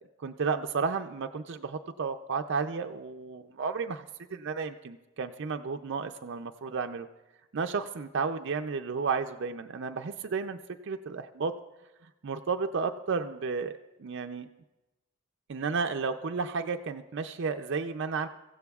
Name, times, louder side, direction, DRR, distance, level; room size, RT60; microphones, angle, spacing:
voice 1, 0.2-4.1 4.3-7.1 7.5-10.6 10.8-11.5 12.2-14.5 15.5-18.3, right 5 dB, 55° right, 6 dB, 0.4 m, -32 dB
23.5 x 15.5 x 2.4 m, 1.0 s
head